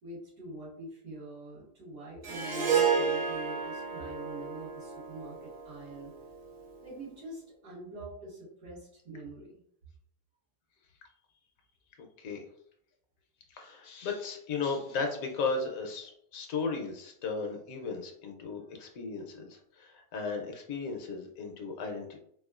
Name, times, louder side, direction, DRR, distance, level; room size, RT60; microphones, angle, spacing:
voice 1, 0.0-6.1 6.8-9.6, right 2 dB, 75° right, -7 dB, 2.2 m, -45 dB
Harp, 2.2-6.7, right 6 dB, 50° right, 0.8 m, -31 dB
voice 2, 13.5-22.2, left 4 dB, 70° left, 3 dB, 1.0 m, -35 dB
4.2 x 2.3 x 2.3 m, 0.68 s
omnidirectional pair, 1.6 m